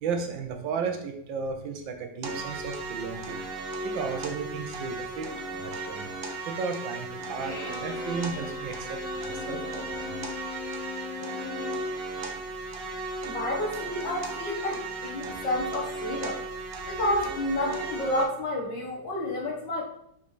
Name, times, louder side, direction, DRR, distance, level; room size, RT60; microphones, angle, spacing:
voice 1, 0.0-3.4 3.8-6.1 6.4-10.2, right 5 dB, 75° right, 4 dB, 1.6 m, -34 dB
sound 1, 2.2-18.2, right 2 dB, 45° right, 0.9 m, -36 dB
Bowed string instrument, 7.4-11.9, left 5 dB, 30° left, 0.9 m, -40 dB
voice 2, 13.3-16.4 16.9-19.8, left 1 dB, 70° left, -1 dB, 2.1 m, -30 dB
5.8 x 4.7 x 4.1 m, 0.72 s
omnidirectional pair, 2.1 m